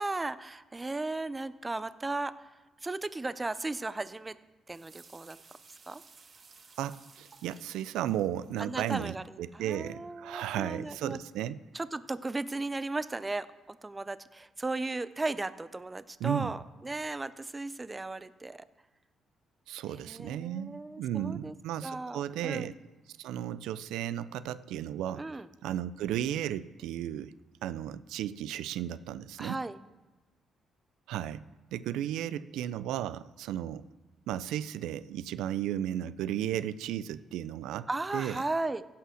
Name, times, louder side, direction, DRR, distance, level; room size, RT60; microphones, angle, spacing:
voice 1, 0.0-2.4 2.8-4.4 4.7-5.4 5.9-6.0 8.6-9.2 9.5-11.2 11.7-18.6 19.9-21.5 21.8-22.7 25.2-25.5 29.4-29.8 37.9-38.9, right 2 dB, 20° right, 15 dB, 0.5 m, -36 dB
sound 1, 4.7-9.2, right 5 dB, 45° right, 1.4 m, -57 dB
voice 2, 6.8-11.6 16.2-16.5 19.7-22.8 23.2-25.3 25.6-27.3 27.6-29.6 31.1-31.4 31.7-33.9 34.3-38.4, right 11 dB, 90° right, 16 dB, 0.3 m, -34 dB
15.5 x 5.6 x 6.3 m, 1.1 s
cardioid pair, 90°, 0 cm